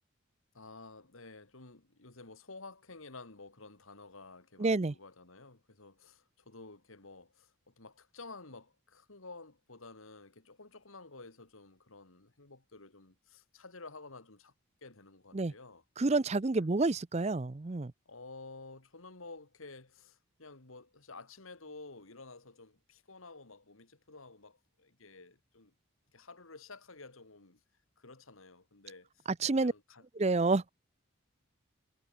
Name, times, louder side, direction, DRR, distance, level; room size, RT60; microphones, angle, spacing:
voice 1, 0.5-14.5 14.8-15.8 16.5-16.7 18.1-25.7 26.1-27.6 28.0-29.2 29.5-30.0, left 3 dB, 80° left, 2.5 m, -52 dB
voice 2, 4.6-4.9 15.3-15.5 16.0-17.9 29.4-29.7 30.2-30.7, right 3 dB, 30° right, 0.5 m, -29 dB
head